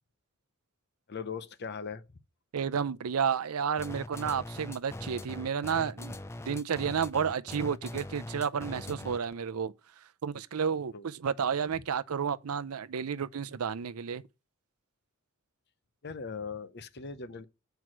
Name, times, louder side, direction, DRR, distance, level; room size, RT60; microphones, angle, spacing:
voice 1, 1.1-2.2 8.9-9.0 10.9-11.1 16.0-17.4, left 5 dB, 50° left, 0.8 m, -40 dB
voice 2, 2.5-6.2 6.5-9.7 10.2-14.2, right 7 dB, 80° right, 0.5 m, -31 dB
sound 1, 3.8-9.3, left 1 dB, 10° left, 0.4 m, -41 dB
7.7 x 4.7 x 6.1 m
head